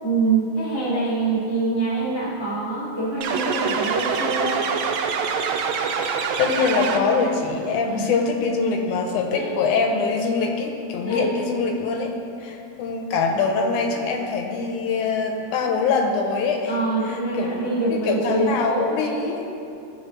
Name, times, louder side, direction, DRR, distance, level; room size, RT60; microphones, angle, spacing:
voice 1, 0.0-4.6 7.9-8.2 9.3-9.5 11.1-11.3 15.7-15.8 16.7-18.8, right 3 dB, 20° left, -8 dB, 0.6 m, -25 dB
sound 1, 3.2-7.4, right 6 dB, 80° right, 1.7 m, -25 dB
voice 2, 6.4-12.1 12.4-16.7 17.0-17.6 17.9-19.4, left 4 dB, 80° left, 3 dB, 2.0 m, -24 dB
13.5 x 4.7 x 3.0 m, 2.6 s
omnidirectional pair, 3.6 m